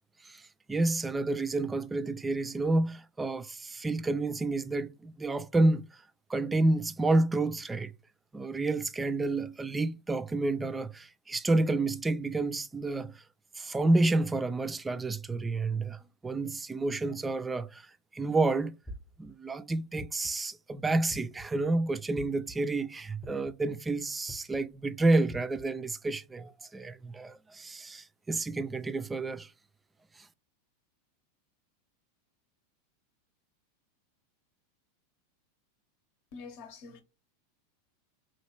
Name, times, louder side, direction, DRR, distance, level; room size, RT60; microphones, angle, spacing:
voice 1, 0.7-5.9 6.3-7.9 8.3-13.2 13.6-17.9 18.1-18.8 19.2-29.5, right 2 dB, 15° right, 0.3 m, -29 dB
sound 1, 18.9-19.3 20.0-20.4 21.1-21.5 22.2-22.5 23.2-23.6 24.3-24.6 25.3-25.6, equal, 15° left, 0.7 m, -45 dB
voice 2, 36.3-37.0, left 4 dB, 60° left, 0.9 m, -45 dB
2.9 x 2.4 x 3.2 m
hypercardioid pair, 110°, 0 cm